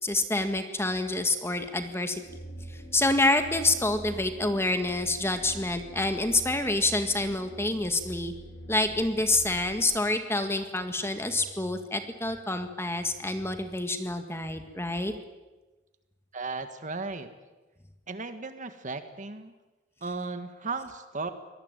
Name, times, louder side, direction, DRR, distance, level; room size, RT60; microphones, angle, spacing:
voice 1, 0.0-2.2 2.9-8.3 8.7-15.1, left 2 dB, 15° left, 7 dB, 1.8 m, -27 dB
sound 1, 2.2-9.8, right 1 dB, 60° left, 4.4 m, -44 dB
voice 2, 16.3-17.3 18.1-19.5 20.0-21.3, right 3 dB, 40° right, 9 dB, 1.7 m, -35 dB
24.5 x 19.0 x 9.2 m, 1.1 s
head